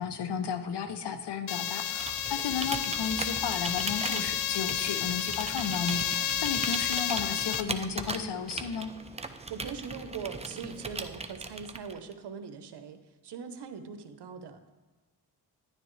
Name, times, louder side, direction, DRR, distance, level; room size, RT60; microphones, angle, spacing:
voice 1, 0.0-8.9, left 6 dB, 75° left, 9 dB, 0.9 m, -34 dB
sound 1, 1.5-7.6, left 10 dB, 55° left, 0.5 m, -31 dB
Computer keyboard, 1.8-12.1, right 3 dB, 15° right, 0.6 m, -39 dB
voice 2, 9.5-13.0 13.2-14.7, right 6 dB, 80° right, 8 dB, 1.0 m, -41 dB
10.5 x 9.8 x 3.2 m, 1.3 s
cardioid pair, 75°, 40 cm